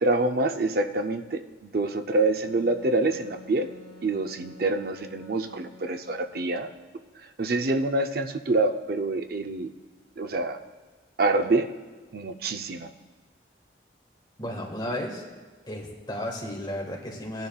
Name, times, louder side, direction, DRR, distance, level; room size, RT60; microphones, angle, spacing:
voice 1, 0.0-3.7 4.0-6.7 7.4-9.7 10.2-10.6 11.2-11.7 12.1-12.9, right 2 dB, 55° right, 7 dB, 0.5 m, -26 dB
Wind instrument woodwind instrument, 2.5-6.5, left 1 dB, 85° left, 3.3 m, -49 dB
voice 2, 14.4-15.2 15.7-17.5, left 1 dB, 25° left, 0 dB, 1.6 m, -33 dB
17.0 x 10.5 x 2.4 m, 1.3 s
head